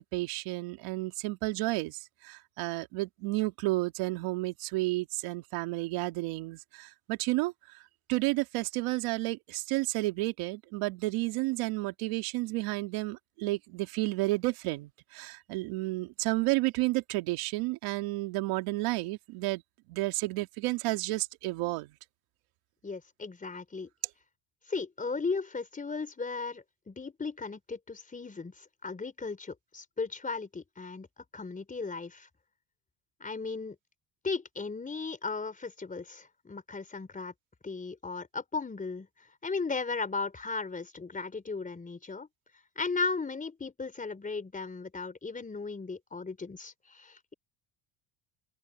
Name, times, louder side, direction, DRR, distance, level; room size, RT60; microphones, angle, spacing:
voice 1, 0.0-2.0 2.3-7.5 8.1-19.6 19.9-21.9, right 21 dB, 85° right, 2.5 m, -31 dB
voice 2, 22.8-23.9 24.7-31.1 31.3-32.3 33.2-33.8 34.2-37.3 37.6-39.1 39.4-42.3 42.8-47.3, left 4 dB, 15° left, 3.9 m, -36 dB
cardioid pair, 130°, 49 cm